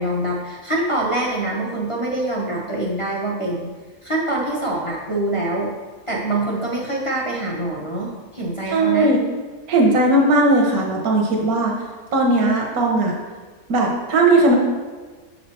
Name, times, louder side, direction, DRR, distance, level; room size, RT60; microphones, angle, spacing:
voice 1, 0.0-3.7 4.0-5.7 6.1-9.1, right 2 dB, 30° left, -3 dB, 0.7 m, -24 dB
voice 2, 8.7-9.2 9.7-11.7 12.1-13.1 13.7-14.6, right 2 dB, 80° right, 0 dB, 1.4 m, -17 dB
6.6 x 4.2 x 4.2 m, 1.4 s
omnidirectional pair, 1.5 m